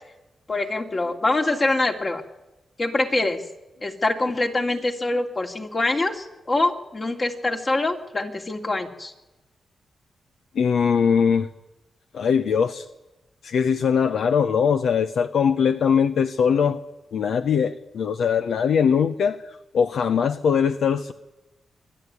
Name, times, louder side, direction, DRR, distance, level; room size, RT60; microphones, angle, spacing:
voice 1, 0.5-2.2 2.8-3.4 3.8-9.1, left 2 dB, 40° left, 3 dB, 2.7 m, -24 dB
voice 2, 10.5-11.5 12.1-12.8 13.4-16.8 17.1-19.4 19.7-21.1, left 7 dB, 80° left, 9 dB, 0.7 m, -21 dB
24.5 x 11.0 x 9.7 m, 1.0 s
cardioid pair, 60°, 0 cm